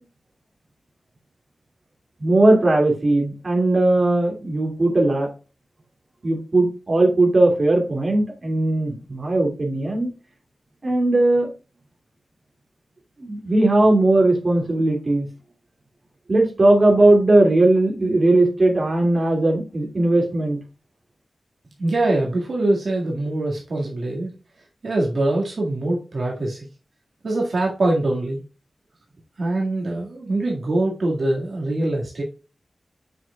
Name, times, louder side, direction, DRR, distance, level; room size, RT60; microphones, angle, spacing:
voice 1, 2.2-5.3 6.2-10.1 10.8-11.5 13.2-15.3 16.3-20.6, right 2 dB, 40° right, 0 dB, 2.6 m, -18 dB
voice 2, 21.8-24.3 24.8-26.7 27.2-28.4 29.4-32.2, right 2 dB, 65° right, -2 dB, 2.0 m, -23 dB
7.7 x 6.0 x 2.3 m, 0.33 s
wide cardioid pair, 125°, 0 cm